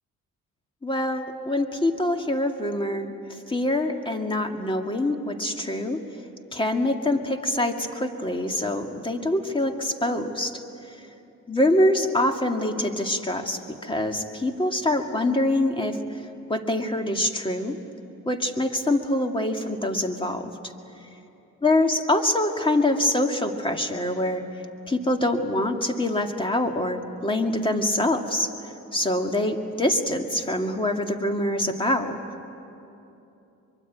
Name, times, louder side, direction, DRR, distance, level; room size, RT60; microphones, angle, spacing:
voice 1, 0.8-6.0 6.5-10.6 11.5-16.0 16.5-17.8 18.3-20.7 21.6-24.4 24.9-28.5 28.9-32.2, left 1 dB, 15° left, 4 dB, 2.2 m, -25 dB
23.5 x 23.5 x 9.3 m, 2.8 s
cardioid pair, 90°, 30 cm